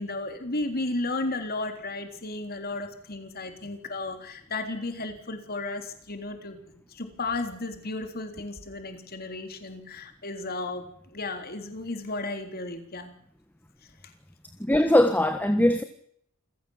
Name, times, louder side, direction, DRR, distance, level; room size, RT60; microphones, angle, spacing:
voice 1, 0.0-13.1, left 2 dB, 45° left, 3.6 m, -34 dB
voice 2, 14.6-15.8, left 1 dB, 10° left, 1.4 m, -21 dB
28.0 x 16.5 x 7.3 m
head